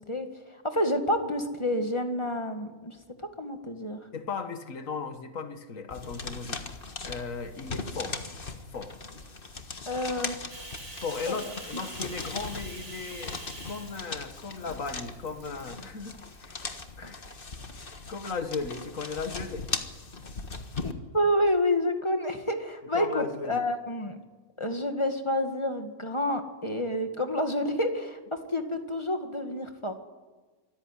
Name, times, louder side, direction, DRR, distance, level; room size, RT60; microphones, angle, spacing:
voice 1, 0.0-4.0 9.9-10.4 11.3-11.4 17.0-17.1 20.8-24.2 24.6-28.2 28.5-30.0, left 1 dB, 20° left, 6 dB, 2.0 m, -29 dB
voice 2, 4.1-6.7 7.0-8.2 8.7-9.0 11.0-13.4 13.6-16.7 17.0-17.2 17.8-19.7 22.9-23.6, left 4 dB, 70° left, 8 dB, 2.0 m, -36 dB
sound 1, 5.9-20.9, left 4 dB, 40° left, 1.7 m, -39 dB
Bathtub (filling or washing), 10.5-15.9 16.3-16.7 17.3-18.1, right 2 dB, 75° right, 5.0 m, -46 dB
25.0 x 14.5 x 9.9 m, 1.3 s
omnidirectional pair, 1.4 m